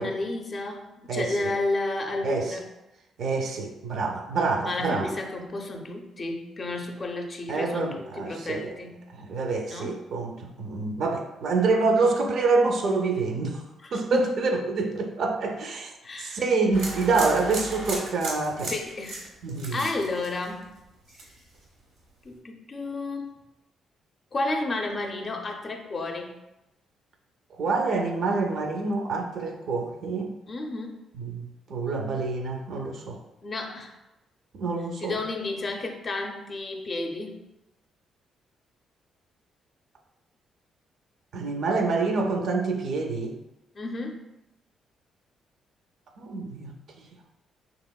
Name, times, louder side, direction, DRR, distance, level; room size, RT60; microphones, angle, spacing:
voice 1, 0.0-2.7 4.6-9.1 9.7-10.0 13.8-14.3 16.0-16.4 18.7-19.3 19.7-20.8 22.2-23.3 24.3-26.4 30.5-31.0 33.4-34.0 35.0-37.4 43.7-44.3, left 2 dB, 35° left, 3 dB, 0.4 m, -32 dB
voice 2, 2.2-2.5 3.2-5.1 7.5-8.7 9.1-13.6 13.9-15.9 16.2-18.7 19.4-19.9 27.5-30.3 31.1-33.2 34.5-35.1 41.3-43.3 46.2-46.7, right 3 dB, 65° right, 3 dB, 0.4 m, -26 dB
sound 1, 16.7-20.8 21.1-21.6, right 2 dB, 80° right, 0.8 m, -35 dB
2.9 x 2.9 x 2.2 m, 0.95 s
cardioid pair, 90°, 0 cm